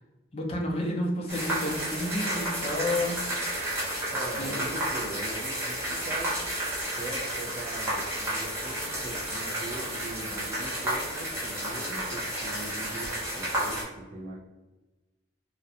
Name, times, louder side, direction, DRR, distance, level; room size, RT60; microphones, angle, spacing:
voice 1, 0.3-3.2 4.4-4.5, left 1 dB, 35° left, -1 dB, 0.5 m, -30 dB
sound 1, 1.3-13.8, right 1 dB, 15° right, 0.7 m, -32 dB
voice 2, 4.1-6.4 6.9-14.4, right 1 dB, 50° right, -6 dB, 0.4 m, -40 dB
2.4 x 2.1 x 2.7 m, 1.1 s
head